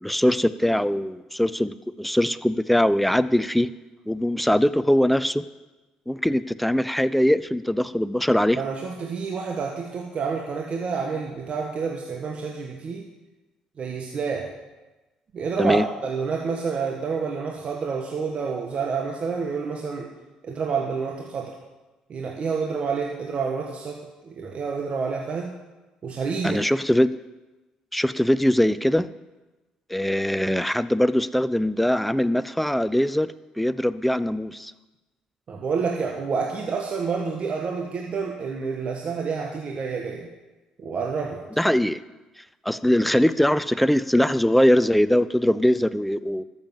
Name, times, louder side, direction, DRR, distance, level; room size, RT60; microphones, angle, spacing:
voice 1, 0.0-3.7 4.1-5.5 6.1-8.6 15.6-15.9 26.4-27.1 27.9-29.1 29.9-33.3 33.6-34.7 41.6-42.0 42.7-46.4, equal, 5° left, 15 dB, 0.6 m, -21 dB
voice 2, 8.5-13.0 13.8-14.5 15.3-20.1 20.4-21.5 22.1-25.5 26.0-26.6 35.5-40.3 40.8-41.4, right 5 dB, 50° right, 0 dB, 1.7 m, -28 dB
13.0 x 7.3 x 7.3 m, 1.1 s
supercardioid pair, 65°, 3 cm